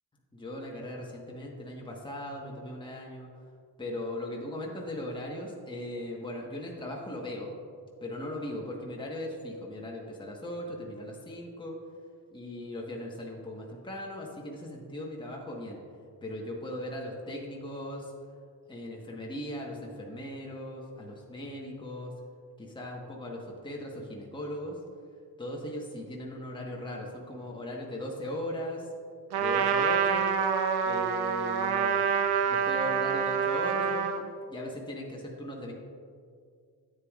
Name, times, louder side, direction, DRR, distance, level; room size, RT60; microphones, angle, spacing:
voice 1, 0.3-3.3 3.8-7.6 8.0-11.8 12.3-15.8 16.2-18.1 18.7-22.1 22.6-24.8 25.4-28.9 29.4-30.3 30.8-32.1 32.4-34.1 34.5-35.7, left 1 dB, 10° left, -2 dB, 1.3 m, -38 dB
Trumpet, 29.3-34.2, right 7 dB, 75° right, 0.7 m, -27 dB
9.6 x 8.1 x 2.4 m, 2.2 s
cardioid pair, 60°, 40 cm